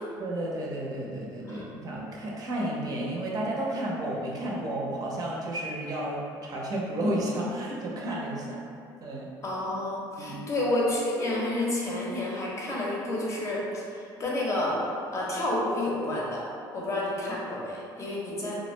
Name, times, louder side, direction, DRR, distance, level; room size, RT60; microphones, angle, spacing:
voice 1, 0.2-8.6 9.0-9.3 10.2-10.4, right 1 dB, 45° right, -4 dB, 0.5 m, -32 dB
voice 2, 9.4-14.8 15.1-16.4 16.7-18.6, left 1 dB, 35° left, -4 dB, 0.6 m, -30 dB
2.3 x 2.1 x 3.1 m, 2.4 s
cardioid pair, 100°, 9 cm